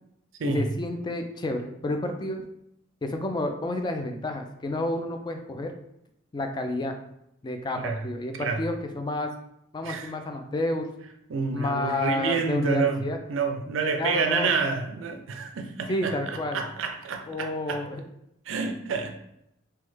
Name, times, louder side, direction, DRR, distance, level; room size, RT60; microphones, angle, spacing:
voice 1, 0.4-2.4 3.0-5.7 6.3-7.0 7.4-9.3 9.7-10.9 11.5-13.2 14.0-14.5 15.9-16.6 17.3-18.0, left 1 dB, 20° left, 5 dB, 0.3 m, -30 dB
voice 2, 11.3-13.0 13.3-17.8 18.5-19.3, right 4 dB, 70° right, 5 dB, 0.4 m, -28 dB
3.1 x 2.2 x 3.2 m, 0.79 s
head